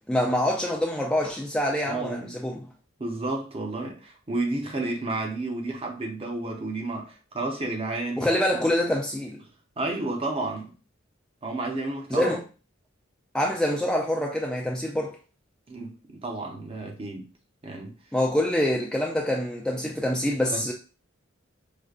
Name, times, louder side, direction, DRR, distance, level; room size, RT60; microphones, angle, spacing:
voice 1, 0.1-2.7 8.2-9.4 12.1-12.4 13.3-15.2 18.1-20.7, left 1 dB, 5° left, 0.3 m, -25 dB
voice 2, 1.9-2.4 3.0-8.3 9.8-10.7 11.4-12.3 15.7-17.3 17.6-17.9 20.5-20.6, right 2 dB, 30° right, 0.8 m, -31 dB
4.9 x 2.2 x 2.4 m
head